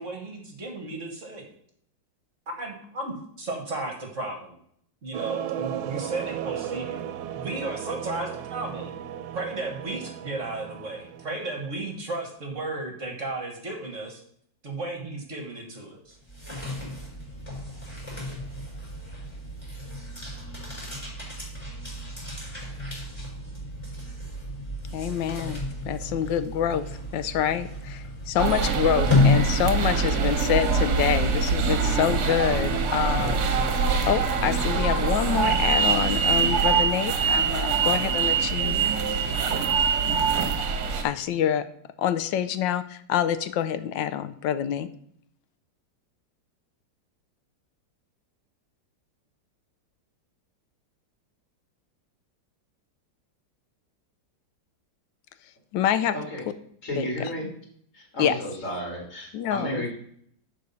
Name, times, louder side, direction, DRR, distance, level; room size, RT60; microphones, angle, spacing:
voice 1, 0.0-1.5 2.6-4.6 5.0-7.0 7.3-8.9 9.3-14.2 14.6-16.2, right 2 dB, 45° right, 2 dB, 1.6 m, -34 dB
sound 1, 5.1-11.8, right 10 dB, 85° right, 1.4 m, -35 dB
sound 2, 16.1-30.2, left 2 dB, 15° left, 4.5 m, -31 dB
voice 2, 24.9-26.9 27.1-33.5 34.1-38.8 41.0-41.6 42.0-44.9 55.7-56.2 57.0-57.3 58.2-58.4 59.3-59.8, left 9 dB, 80° left, 12 dB, 1.3 m, -26 dB
sound 3, 28.4-41.0, right 5 dB, 60° right, 1.5 m, -24 dB
voice 3, 56.8-57.5 57.9-59.9, equal, 40° left, 0 dB, 2.6 m, -32 dB
11.0 x 4.1 x 5.4 m, 0.66 s
omnidirectional pair, 2.0 m